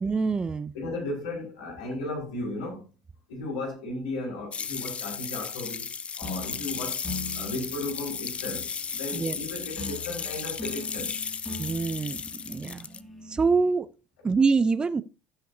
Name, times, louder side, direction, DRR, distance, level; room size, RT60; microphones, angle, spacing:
voice 1, 0.0-0.7 9.1-9.4 11.6-12.2 12.5-12.9 13.3-13.9 14.2-15.0, right 4 dB, 25° right, 0.5 m, -25 dB
voice 2, 0.7-2.8 3.3-5.9 6.2-7.0 7.3-11.1, left 2 dB, 90° left, 4.5 m, -35 dB
sound 1, 4.5-13.0, left 6 dB, 35° left, 0.6 m, -35 dB
sound 2, 6.2-13.7, left 2 dB, 10° left, 2.7 m, -42 dB
15.5 x 5.7 x 2.7 m
supercardioid pair, 85°, 4 cm